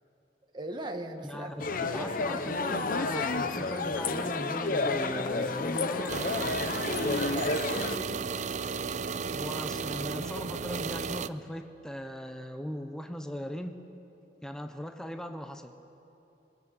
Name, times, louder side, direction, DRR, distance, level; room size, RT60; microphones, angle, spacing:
voice 1, 0.5-2.8 7.2-8.3, right 1 dB, 25° right, 4 dB, 1.7 m, -40 dB
voice 2, 1.2-6.2 9.3-13.7 14.4-15.7, equal, 5° left, 6 dB, 0.9 m, -39 dB
sound 1, 1.6-8.0, left 3 dB, 50° left, 0.9 m, -30 dB
sound 2, 6.1-11.3, right 5 dB, 45° right, 0.5 m, -34 dB
25.0 x 20.5 x 7.8 m, 2.9 s
head